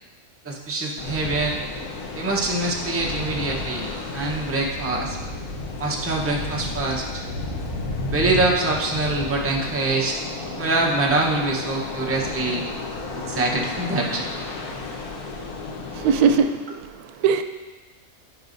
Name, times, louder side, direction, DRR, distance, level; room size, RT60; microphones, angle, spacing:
voice 1, 0.4-1.6 2.1-5.2 5.8-7.2 8.1-10.2 10.6-12.6 13.1-14.3, right 2 dB, 10° right, -2 dB, 0.7 m, -24 dB
sound 1, 1.0-16.4, left 3 dB, 90° left, 1.4 m, -32 dB
voice 2, 15.9-17.4, right 6 dB, 85° right, 7 dB, 1.1 m, -21 dB
11.5 x 5.4 x 2.6 m, 1.3 s
omnidirectional pair, 1.5 m